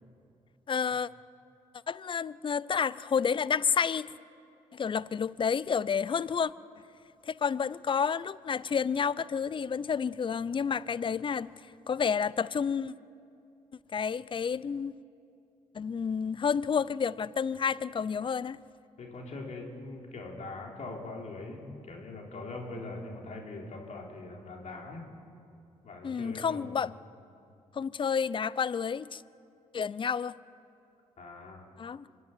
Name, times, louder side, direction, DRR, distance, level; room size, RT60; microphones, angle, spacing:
voice 1, 0.7-1.1 1.9-4.1 4.7-6.5 7.3-11.5 11.9-12.9 13.9-14.9 15.7-18.6 26.0-26.9 27.7-29.2 29.7-30.3 31.8-32.1, left 6 dB, 40° left, 19 dB, 0.6 m, -30 dB
voice 2, 19.0-25.0 25.8-26.8 31.2-31.7, left 2 dB, 60° left, 0 dB, 4.1 m, -42 dB
24.5 x 11.0 x 9.8 m, 2.6 s
supercardioid pair, 60°, 13 cm